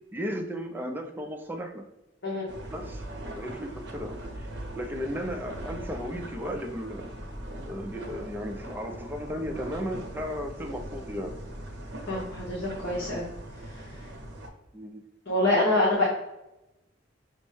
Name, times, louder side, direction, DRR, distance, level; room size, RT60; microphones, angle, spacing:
voice 1, 0.1-1.8 2.7-3.0 3.4-4.5 4.8-7.1 7.7-11.3 14.7-15.0, equal, 10° right, 2 dB, 0.4 m, -35 dB
sound 1, 2.5-14.5, right 1 dB, 60° right, 0.7 m, -40 dB
voice 2, 12.1-13.2 15.3-16.0, left 2 dB, 70° left, -5 dB, 1.0 m, -25 dB
6.0 x 2.1 x 3.2 m, 0.95 s
head